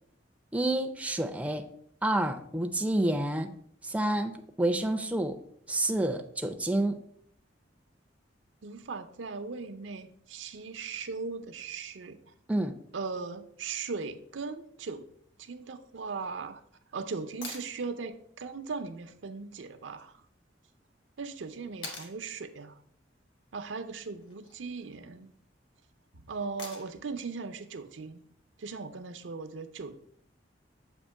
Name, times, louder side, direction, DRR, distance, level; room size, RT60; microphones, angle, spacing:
voice 1, 0.5-1.7 2.0-3.5 3.8-5.4 5.7-7.0 12.5-12.8, right 1 dB, 5° right, 0.4 m, -29 dB
voice 2, 8.6-12.2 12.9-15.1 15.4-16.6 16.9-20.1 21.2-22.8 23.5-25.3 26.1-28.2 28.6-29.9, right 4 dB, 80° right, 0.6 m, -38 dB
sound 1, 17.4-17.7 20.0-20.1 21.8-22.2 24.2-24.6 26.6-27.1 29.2-29.3, left 3 dB, 75° left, 1.4 m, -42 dB
7.2 x 2.9 x 5.4 m
head